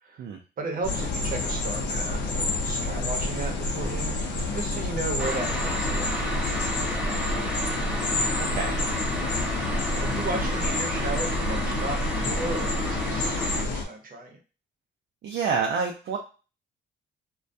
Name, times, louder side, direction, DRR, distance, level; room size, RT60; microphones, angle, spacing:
voice 1, 0.6-7.7 9.9-14.4, right 2 dB, 45° right, 3 dB, 0.8 m, -35 dB
sound 1, 0.8-13.8, left 2 dB, 65° left, 0.6 m, -28 dB
sound 2, 5.2-13.6, equal, 5° right, 0.6 m, -32 dB
voice 2, 15.2-16.2, right 5 dB, 65° right, 1 dB, 0.4 m, -27 dB
2.2 x 2.2 x 2.5 m, 0.34 s
cardioid pair, 90°, 20 cm